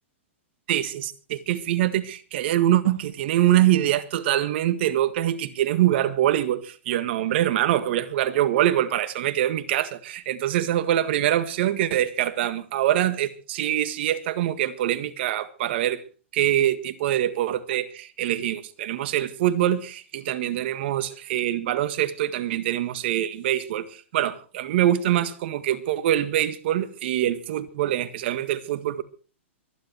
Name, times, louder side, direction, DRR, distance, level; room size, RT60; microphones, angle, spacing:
voice 1, 0.7-16.0 16.3-29.0, right 12 dB, 55° right, 1.7 m, -24 dB
24.5 x 11.0 x 4.6 m
hypercardioid pair, 130°, 7 cm